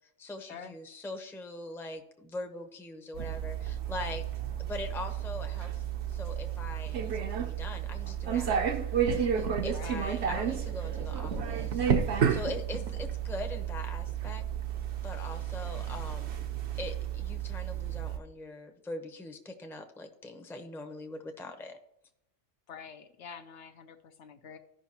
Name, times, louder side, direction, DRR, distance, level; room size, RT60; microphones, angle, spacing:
voice 1, 0.2-4.2 4.6-5.8 6.1-8.7 9.1-14.4 15.0-16.4 16.7-21.8, left 2 dB, ahead, 5 dB, 0.7 m, -42 dB
sound 1, 3.2-18.2, right 8 dB, 60° right, 1.0 m, -32 dB
voice 2, 9.7-10.1 22.7-24.6, left 6 dB, 65° left, 7 dB, 1.0 m, -46 dB
14.5 x 5.6 x 2.9 m, 0.81 s
omnidirectional pair, 1.3 m